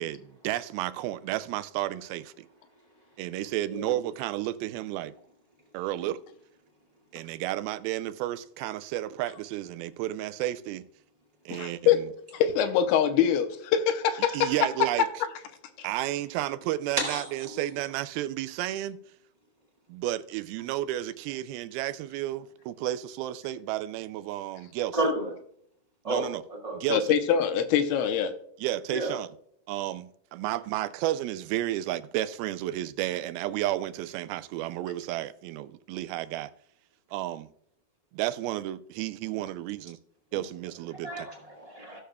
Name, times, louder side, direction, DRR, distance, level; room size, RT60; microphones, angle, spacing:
voice 1, 0.0-2.5 3.2-5.1 5.7-6.2 7.1-10.9 11.5-12.1 14.3-15.1 15.8-19.0 19.9-25.0 26.1-26.4 26.7-27.2 28.6-29.3 29.7-36.5 37.1-37.5 38.1-40.0 40.3-41.3, right 14 dB, 85° right, 2.4 m, -32 dB
voice 2, 11.5-12.0 12.3-14.5 26.9-28.3, left 9 dB, 90° left, 2.7 m, -24 dB
voice 3, 17.0-17.6 24.9-25.3 26.0-26.3 26.6-26.8 28.9-29.2 40.3-40.4 41.0-42.0, right 1 dB, 35° right, 0.5 m, -31 dB
17.0 x 6.6 x 2.3 m
omnidirectional pair, 4.3 m